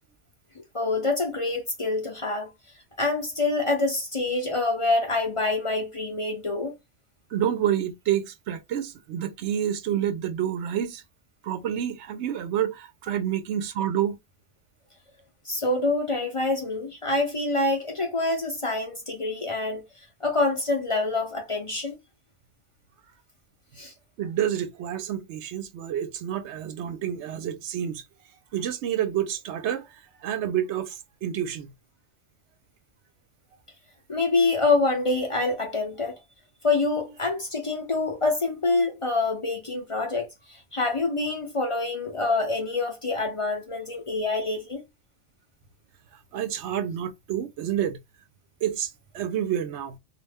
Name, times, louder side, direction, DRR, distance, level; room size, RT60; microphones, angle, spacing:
voice 1, 0.7-2.5 3.0-6.7 15.4-19.8 20.2-21.9 23.8-23.9 34.1-36.2 36.6-40.3 40.7-44.8, left 3 dB, 35° left, 0.6 m, -26 dB
voice 2, 7.3-11.0 11.4-14.2 24.2-28.0 28.5-31.7 46.3-48.0 48.6-50.0, right 10 dB, 85° right, 0.9 m, -28 dB
2.5 x 2.0 x 3.4 m
omnidirectional pair, 1.1 m